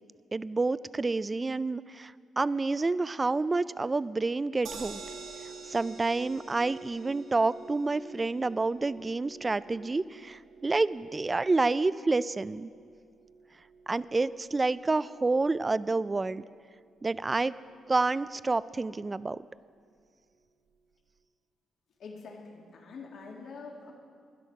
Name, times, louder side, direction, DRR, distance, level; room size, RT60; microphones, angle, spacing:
voice 1, 0.3-5.0 5.7-12.7 13.9-16.4 17.0-17.5 17.9-19.4, right 3 dB, 25° right, 17 dB, 0.3 m, -28 dB
sound 1, 4.6-16.9 17.3-17.4 17.6-17.7, right 5 dB, 80° right, 1.6 m, -49 dB
voice 2, 22.0-23.9, left 4 dB, 65° left, 0 dB, 2.2 m, -45 dB
12.0 x 11.0 x 6.0 m, 2.1 s
cardioid pair, 90°, 0 cm